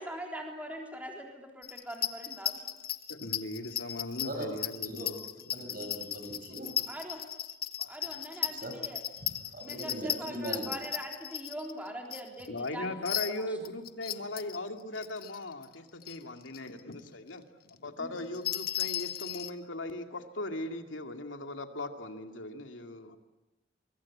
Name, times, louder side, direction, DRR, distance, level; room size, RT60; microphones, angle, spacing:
voice 1, 0.0-2.6 6.9-7.2 7.9-9.0 9.6-12.9 13.3-13.4 18.0-18.1, right 1 dB, 10° right, 1 dB, 3.7 m, -42 dB
sound 1, 1.6-12.7 13.0-14.6 14.9-15.7 16.0-16.2 16.5-16.8 17.1-17.2 18.2-19.5, left 11 dB, 50° left, 1.3 m, -36 dB
voice 2, 3.1-5.2 5.6-5.7 6.8-6.9 7.8-8.1 12.5-23.2, left 2 dB, 85° left, 6 dB, 2.4 m, -39 dB
voice 3, 5.5-6.7 8.5-8.7 9.2-10.7, right 1 dB, 50° right, 5 dB, 6.8 m, -39 dB
24.5 x 23.0 x 8.6 m, 1.1 s
head